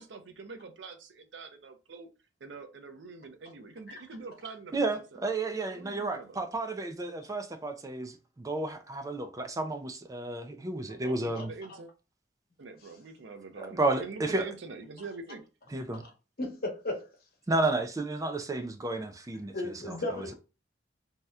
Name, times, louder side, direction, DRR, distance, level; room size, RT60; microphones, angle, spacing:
voice 1, 0.0-2.1 2.4-5.2 5.7-6.4 11.0-11.9 12.6-15.4, right 4 dB, 85° right, 0.6 m, -45 dB
voice 2, 4.7-11.5 13.6-14.5 15.7-16.0 17.5-20.2, right 2 dB, 20° right, 0.3 m, -32 dB
voice 3, 16.4-17.1 19.5-20.3, left 1 dB, 55° left, 1.0 m, -35 dB
2.7 x 2.1 x 3.4 m
head